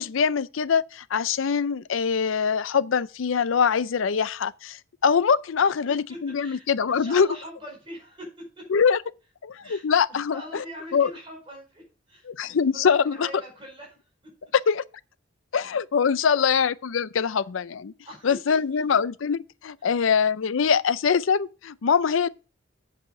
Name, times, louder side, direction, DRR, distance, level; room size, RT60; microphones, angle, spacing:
voice 1, 0.0-7.3 8.7-9.0 9.4-10.4 10.9-11.1 12.3-13.3 14.7-14.8 15.5-17.9 18.2-22.3, left 6 dB, 80° left, 0.5 m, -23 dB
voice 2, 5.6-8.3 8.6-8.7 9.6-14.0 14.2-14.3 16.2-16.5 17.2-17.3 18.1-19.0, equal, 25° right, 4.8 m, -43 dB
8.2 x 5.0 x 6.5 m
head